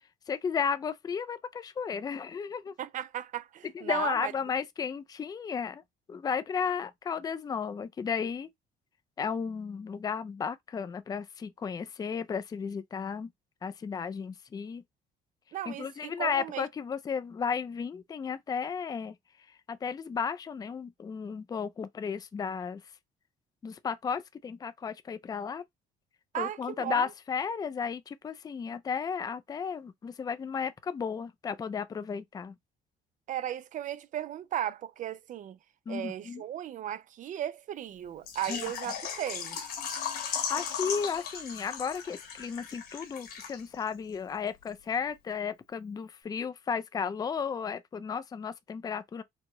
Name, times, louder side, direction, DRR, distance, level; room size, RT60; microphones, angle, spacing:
voice 1, 0.3-2.7 3.7-5.8 6.1-8.5 9.2-13.3 13.6-14.8 15.7-19.2 19.7-22.8 23.6-25.6 26.3-32.5 35.9-36.4 38.5-38.7 40.2-49.2, left 6 dB, 20° left, 0.4 m, -34 dB
voice 2, 2.8-4.3 15.5-16.6 26.3-27.1 33.3-35.6 35.9-39.6, right 11 dB, 50° right, 0.5 m, -36 dB
Water / Liquid, 38.3-43.9 44.1-44.2 44.7-44.8, left 7 dB, 65° left, 1.3 m, -37 dB
4.4 x 2.1 x 3.0 m
cardioid pair, 110°, 17 cm